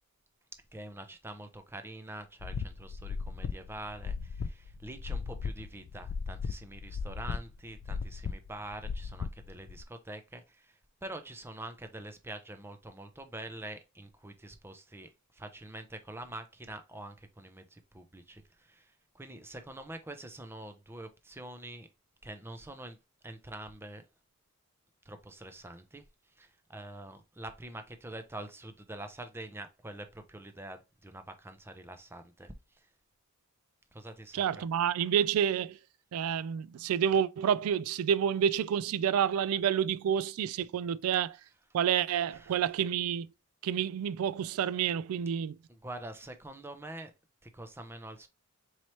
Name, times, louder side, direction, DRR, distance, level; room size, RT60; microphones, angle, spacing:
voice 1, 0.7-21.9 22.2-23.0 23.2-24.0 25.1-26.0 26.4-32.9 33.9-34.6 42.3-42.6 45.7-47.1 47.4-48.3, right 1 dB, 10° right, 0.5 m, -45 dB
sound 1, 2.4-9.8, left 5 dB, 55° left, 0.3 m, -37 dB
voice 2, 34.3-35.8 36.1-41.4 41.7-43.3 43.6-45.6, right 8 dB, 75° right, 0.3 m, -29 dB
4.3 x 3.1 x 3.0 m
head